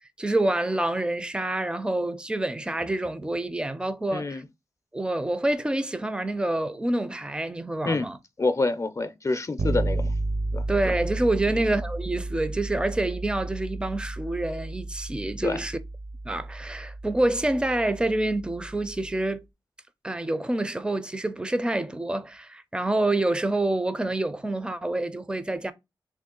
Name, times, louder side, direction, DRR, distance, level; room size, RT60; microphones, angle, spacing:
voice 1, 0.2-4.4 4.9-8.2 10.7-15.8 16.2-19.4 20.0-25.7, right 2 dB, 10° right, 0.5 m, -27 dB
voice 2, 4.1-4.4 7.8-8.1 8.4-10.1 10.5-10.6 11.5-11.7 15.4-15.6, left 3 dB, 40° left, 0.5 m, -27 dB
Bass guitar, 9.6-19.2, right 2 dB, 60° right, 0.8 m, -33 dB
3.6 x 2.4 x 3.7 m
cardioid pair, 55°, 9 cm